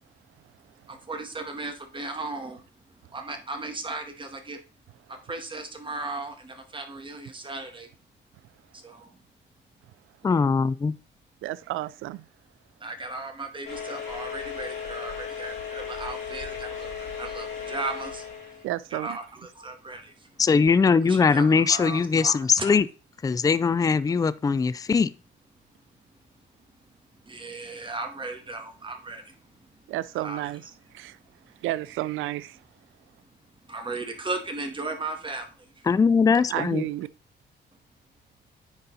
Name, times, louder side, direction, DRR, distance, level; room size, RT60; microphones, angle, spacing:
voice 1, 0.9-2.6 3.1-4.6 5.1-7.9 8.7-9.2 12.8-18.3 18.9-20.3 21.1-22.8 27.2-29.4 30.2-30.5 33.7-35.8, right 3 dB, 25° right, 1.7 m, -36 dB
voice 2, 10.2-11.0 20.4-22.9 23.2-25.1 35.9-36.8, left 5 dB, 20° left, 0.4 m, -21 dB
voice 3, 11.4-12.3 18.6-19.2 29.9-30.6 30.9-31.2 31.6-32.6 36.5-37.1, right 15 dB, 85° right, 0.4 m, -31 dB
sound 1, 13.6-18.7, left 7 dB, 85° left, 3.9 m, -36 dB
9.7 x 4.1 x 4.0 m
cardioid pair, 90°, 20 cm